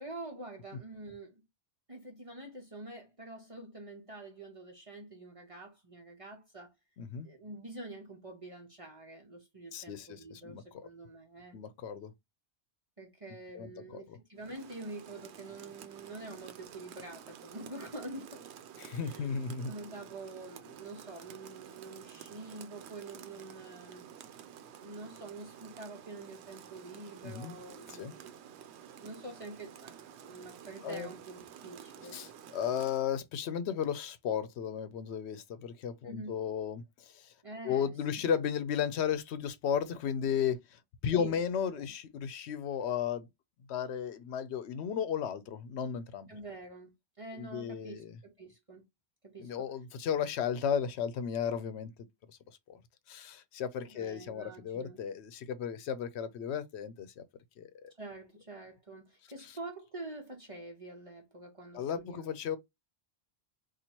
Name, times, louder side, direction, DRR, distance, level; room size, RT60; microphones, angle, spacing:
voice 1, 0.0-1.4 1.9-6.7 7.2-11.6 13.0-18.5 19.0-19.3 19.7-24.1 24.8-28.4 29.0-32.2 36.0-36.4 37.4-38.3 41.1-41.4 41.7-41.9 46.3-46.9 47.2-48.8 49.2-49.7 53.8-55.0 58.0-62.5, right 2 dB, 35° right, 0.8 m, -46 dB
voice 2, 7.0-7.3 9.7-10.6 11.5-12.1 13.5-14.2 18.8-19.7 27.2-27.5 27.9-28.1 30.8-31.1 32.1-37.3 37.6-43.3 43.7-46.3 47.4-48.1 49.4-51.9 52.7-52.8 53.1-57.2 57.6-57.7 61.7-62.6, left 8 dB, 80° left, 0.8 m, -34 dB
Rain, 14.4-33.1, right 9 dB, 80° right, 0.8 m, -51 dB
2.9 x 2.4 x 4.2 m
omnidirectional pair, 1.1 m